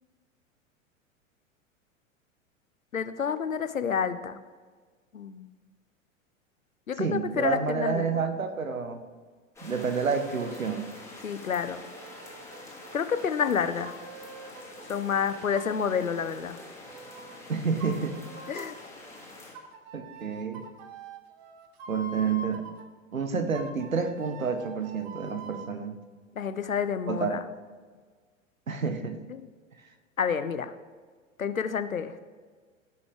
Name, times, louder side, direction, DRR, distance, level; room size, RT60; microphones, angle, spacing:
voice 1, 2.9-4.4 5.1-5.5 6.9-8.2 11.2-11.8 12.9-13.9 14.9-16.6 18.5-18.8 26.4-27.4 29.3-29.4 30.2-30.7 31.4-32.2, left 7 dB, 80° left, 11 dB, 0.7 m, -29 dB
voice 2, 7.0-9.0 9.6-10.9 17.5-18.2 19.9-20.6 21.9-22.6 23.1-26.0 27.1-27.4 28.7-29.2, right 5 dB, 80° right, 9 dB, 1.1 m, -29 dB
sound 1, 9.6-19.5, left 2 dB, 5° left, 2.4 m, -46 dB
sound 2, 9.9-10.9 11.5-14.9 15.5-17.4 17.8-18.9 19.5-22.9 23.5-25.7, right 2 dB, 40° right, 1.1 m, -46 dB
17.0 x 6.0 x 3.4 m, 1.5 s
figure-of-eight pair, 90°, 40 cm